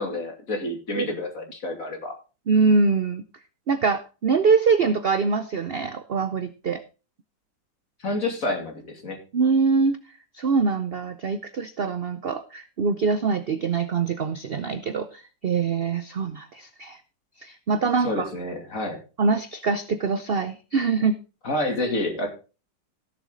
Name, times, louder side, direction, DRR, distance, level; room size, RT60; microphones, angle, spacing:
voice 1, 0.0-2.1 8.0-9.2 18.0-19.0 21.4-22.3, left 2 dB, 50° left, 4 dB, 2.9 m, -29 dB
voice 2, 2.5-3.2 3.7-6.8 9.3-10.0 10.3-17.0 17.4-18.3 19.2-21.1, right 4 dB, 65° right, 11 dB, 0.5 m, -24 dB
16.0 x 7.2 x 3.8 m, 0.32 s
omnidirectional pair, 1.9 m